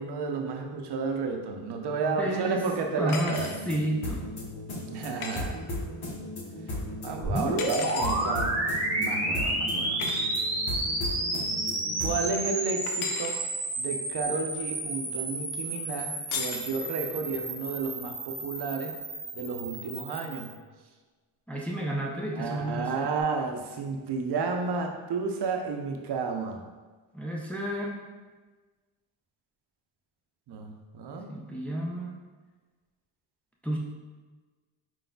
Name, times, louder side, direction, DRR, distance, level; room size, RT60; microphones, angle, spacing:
voice 1, 0.0-3.5 4.7-5.5 7.0-8.5 8.9-10.0 12.0-13.4 13.8-18.9 19.3-20.5 22.3-26.6 30.5-31.3, right 4 dB, 60° right, 3 dB, 0.7 m, -32 dB
voice 2, 2.0-2.6 3.0-4.3 21.5-23.1 27.1-28.0 31.3-32.2 33.6-33.8, right 1 dB, 5° left, -2 dB, 0.5 m, -31 dB
sound 1, 3.1-3.6 5.2-5.4 7.6-8.2 10.0-10.2 12.9-13.4 16.3-16.7, left 5 dB, 85° left, 0.7 m, -35 dB
sound 2, 3.1-12.3, left 1 dB, 55° left, 1.4 m, -37 dB
sound 3, 7.2-20.6, right 1 dB, 35° right, 1.1 m, -31 dB
4.7 x 3.9 x 2.3 m, 1.3 s
cardioid pair, 105°, 47 cm